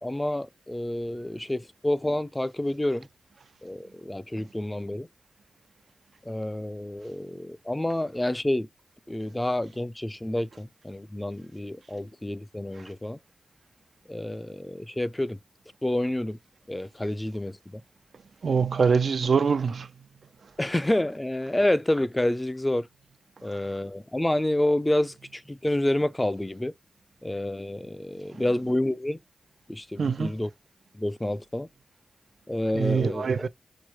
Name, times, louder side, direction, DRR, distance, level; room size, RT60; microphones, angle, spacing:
voice 1, 0.0-3.1 3.6-5.1 6.3-8.7 9.1-13.2 14.1-15.4 15.8-16.4 16.7-17.8 20.6-22.9 23.4-26.7 27.2-29.2 29.7-30.5 30.9-31.7 32.5-33.3, left 1 dB, 15° left, 0.4 m, -28 dB
voice 2, 18.4-19.9 28.3-28.4 30.0-30.3 32.7-33.5, right 5 dB, 70° right, 0.3 m, -24 dB
4.6 x 2.0 x 2.8 m
cardioid pair, 60°, 0 cm